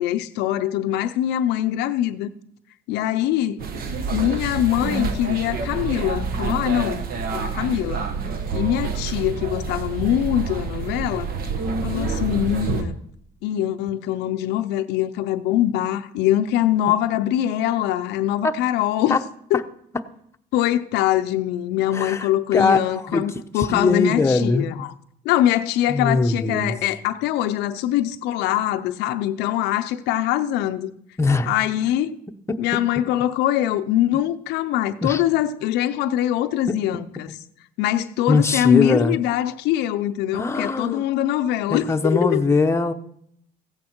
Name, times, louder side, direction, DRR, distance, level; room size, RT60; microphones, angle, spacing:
voice 1, 0.0-2.3 2.9-3.7 4.1-7.0 7.3-8.1 8.5-11.3 11.8-13.0 13.4-19.2 19.5-19.6 20.5-24.9 25.2-30.9 31.5-32.2 32.6-37.3 37.8-42.4, left 12 dB, 90° left, 0.6 m, -23 dB
sound 1, 3.6-12.8, right 4 dB, 60° right, 1.4 m, -27 dB
voice 2, 21.9-24.7 25.9-26.7 31.2-31.5 32.5-32.6 35.0-35.2 36.7-36.8 37.3-37.4 38.3-39.2 40.3-41.0 41.7-42.9, left 3 dB, 15° left, 0.8 m, -21 dB
15.5 x 8.6 x 4.5 m
cardioid pair, 110°, 17 cm